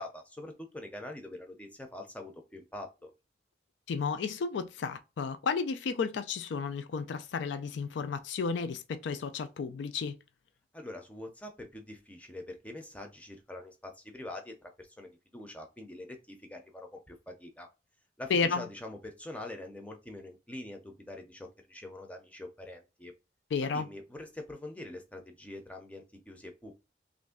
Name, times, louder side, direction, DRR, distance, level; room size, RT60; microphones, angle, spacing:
voice 1, 0.0-3.1 10.7-17.7 18.2-23.1 23.6-26.7, left 1 dB, 10° left, 0.5 m, -44 dB
voice 2, 3.9-10.2 18.3-18.7 23.5-23.9, left 5 dB, 85° left, 0.4 m, -32 dB
3.0 x 2.5 x 3.6 m
head